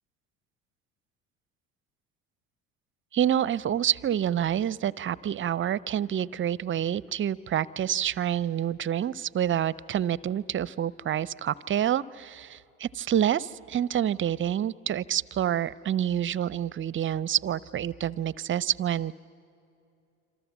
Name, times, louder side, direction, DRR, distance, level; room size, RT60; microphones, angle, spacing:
voice 1, 3.1-19.1, right 10 dB, 30° right, 21 dB, 0.6 m, -28 dB
27.0 x 26.5 x 7.2 m, 2.7 s
hypercardioid pair, 65°, 40 cm